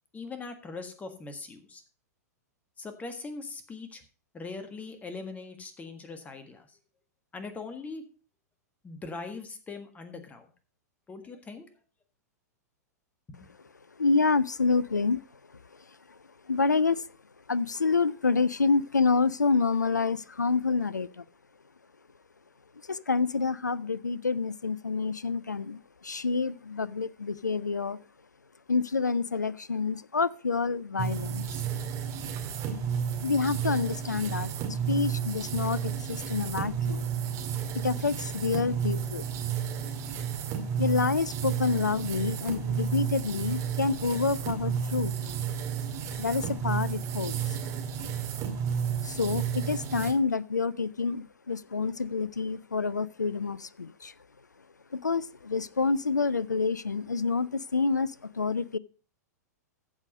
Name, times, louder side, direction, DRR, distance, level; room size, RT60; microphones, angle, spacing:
voice 1, 0.1-1.8 2.8-4.0 4.3-6.7 7.3-8.0 8.8-10.5 11.1-11.7 13.3-13.4, left 4 dB, 15° left, 1.6 m, -41 dB
voice 2, 14.0-15.2 16.5-17.0 17.5-21.2 22.9-28.0 28.7-31.5 33.2-34.5 34.9-37.0 37.7-39.2 40.8-45.1 46.2-47.4 49.0-54.1 54.9-58.8, left 4 dB, 90° left, 0.4 m, -28 dB
sound 1, 31.0-50.1, right 7 dB, 35° right, 2.2 m, -32 dB
14.5 x 4.9 x 5.1 m
figure-of-eight pair, 100°, 9 cm